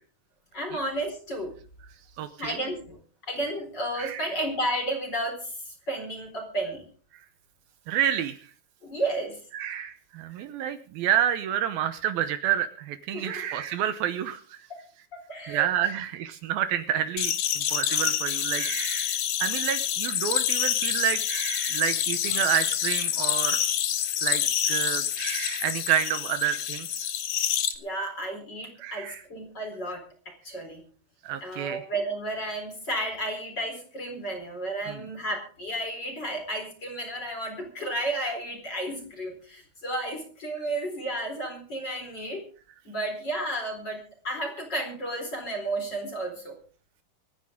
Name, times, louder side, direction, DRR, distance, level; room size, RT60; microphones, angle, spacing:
voice 1, 0.5-1.5 2.4-3.0 3.2-6.8 8.8-9.4 13.1-13.5 15.1-15.9 27.8-30.8 31.4-42.4 42.8-44.0 44.2-46.6, right 1 dB, 25° left, 3 dB, 4.5 m, -32 dB
voice 2, 2.2-2.6 4.0-4.3 7.9-8.4 9.5-14.6 15.5-23.6 24.2-27.1 28.8-29.2 31.2-31.8 34.8-35.0, right 10 dB, 75° right, 10 dB, 2.7 m, -29 dB
sound 1, 17.2-27.7, left 10 dB, 65° left, 1.9 m, -27 dB
25.5 x 10.0 x 3.7 m, 0.41 s
omnidirectional pair, 4.5 m